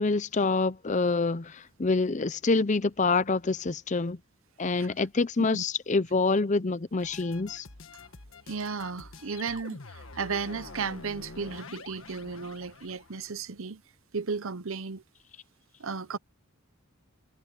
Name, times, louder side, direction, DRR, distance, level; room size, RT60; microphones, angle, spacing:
voice 1, 0.0-4.2 4.6-7.7, left 3 dB, 35° left, 0.6 m, -26 dB
sound 1, 7.0-13.3, left 3 dB, 65° left, 1.6 m, -47 dB
voice 2, 8.5-13.8 14.1-15.0 15.8-16.2, right 5 dB, 65° right, 0.8 m, -34 dB
head